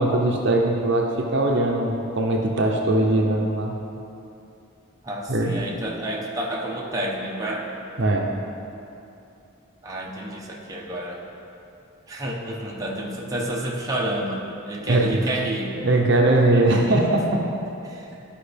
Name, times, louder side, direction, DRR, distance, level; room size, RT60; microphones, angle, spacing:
voice 1, 0.0-3.7 5.3-5.5 8.0-8.3 14.9-15.0 15.8-17.4, right 2 dB, 60° right, 1 dB, 0.7 m, -20 dB
voice 2, 5.0-7.7 9.8-11.2 12.1-15.7 16.5-17.1 17.8-18.1, right 1 dB, 15° right, -4 dB, 0.9 m, -30 dB
12.5 x 5.2 x 3.4 m, 2.7 s
head